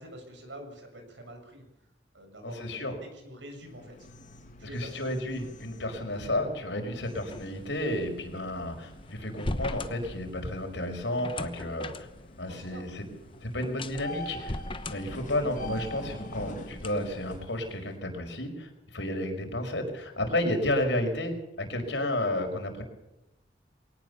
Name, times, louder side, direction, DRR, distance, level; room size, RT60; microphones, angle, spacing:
voice 1, 0.0-1.6 2.1-4.1 4.6-5.1 12.5-12.9 19.0-19.1, equal, 90° right, 5 dB, 7.1 m, -46 dB
voice 2, 2.4-2.9 4.6-12.1 12.4-13.1 13.4-14.6 14.9-22.8, left 1 dB, 80° left, 4 dB, 5.5 m, -32 dB
sound 1, 3.5-18.0, left 1 dB, 45° left, 2.7 m, -46 dB
sound 2, 7.3-17.3, left 2 dB, 30° left, 1.1 m, -40 dB
22.0 x 18.5 x 7.1 m, 0.91 s
head